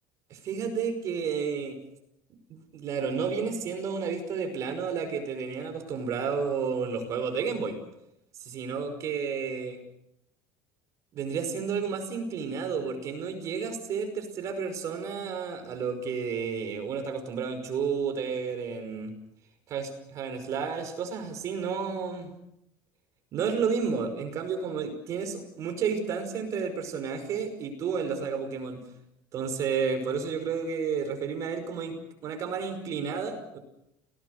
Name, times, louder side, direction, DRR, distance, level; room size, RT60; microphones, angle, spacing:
voice 1, 0.3-1.8 2.5-7.8 8.4-9.8 11.1-19.1 19.7-22.3 23.3-28.8 29.3-31.9 32.2-33.6, right 6 dB, 40° right, 7 dB, 5.5 m, -31 dB
29.0 x 18.5 x 6.8 m, 0.80 s
cardioid pair, 160°, 8 cm